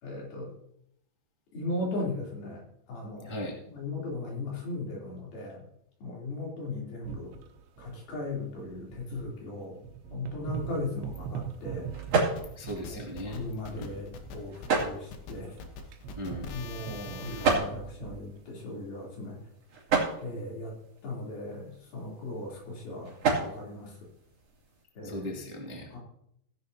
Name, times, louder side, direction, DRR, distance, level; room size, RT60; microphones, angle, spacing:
voice 1, 0.0-0.5 1.5-2.6 2.9-5.7 6.0-7.3 7.8-9.8 10.1-11.9 12.9-15.6 16.5-19.4 20.2-20.8 21.0-24.0 25.0-25.4 25.9-26.0, left 2 dB, 70° left, -3 dB, 5.3 m, -37 dB
voice 2, 3.2-3.6 12.5-13.4 13.7-13.9 16.2-16.5 25.0-25.9, equal, 20° right, -1 dB, 0.9 m, -38 dB
sound 1, 7.0-9.5 9.8-14.5 14.8-14.9 15.5-18.4, right 8 dB, 85° right, 3.0 m, -42 dB
sound 2, 10.5-24.8, right 4 dB, 45° right, 3.5 m, -34 dB
sound 3, 12.4-17.5, left 5 dB, 85° left, 3.2 m, -44 dB
16.5 x 11.0 x 2.8 m, 0.74 s
omnidirectional pair, 4.5 m